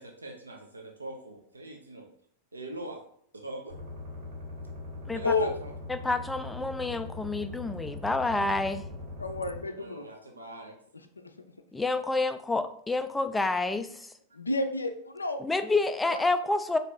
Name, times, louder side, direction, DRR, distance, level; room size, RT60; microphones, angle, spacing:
voice 1, 0.0-2.1 2.5-3.0 3.3-4.0 5.1-5.7 7.9-8.0 9.7-10.8, right 1 dB, 80° right, 2 dB, 0.6 m, -43 dB
sound 1, 3.7-9.6, left 2 dB, 55° right, 1.5 m, -41 dB
voice 2, 5.9-8.9 11.7-14.1 15.4-16.8, left 3 dB, 10° left, 9 dB, 0.3 m, -28 dB
voice 3, 9.2-10.1 11.2-11.3 14.3-15.4 16.1-16.2, left 3 dB, 80° left, 7 dB, 0.4 m, -30 dB
3.8 x 2.7 x 3.3 m, 0.63 s
figure-of-eight pair, 90°, 0 cm